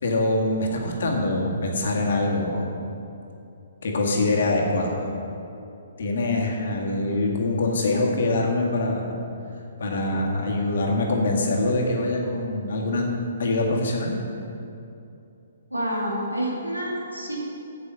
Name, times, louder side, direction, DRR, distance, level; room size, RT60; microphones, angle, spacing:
voice 1, 0.0-2.7 3.8-5.1 6.0-9.2 9.8-13.1 13.4-14.2, left 2 dB, 55° left, 0 dB, 1.8 m, -24 dB
voice 2, 15.7-17.4, right 1 dB, 90° right, -2 dB, 2.4 m, -28 dB
8.2 x 7.0 x 7.5 m, 2.7 s
figure-of-eight pair, 125°, 0 cm